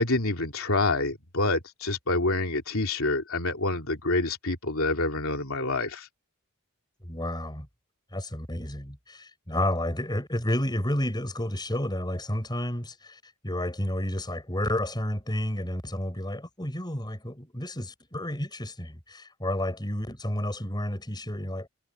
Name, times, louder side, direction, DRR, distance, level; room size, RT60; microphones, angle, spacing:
voice 1, 0.0-6.1, left 2 dB, 70° left, 3.2 m, -27 dB
voice 2, 7.0-7.7 8.1-21.7, left 1 dB, 20° left, 5.5 m, -31 dB
head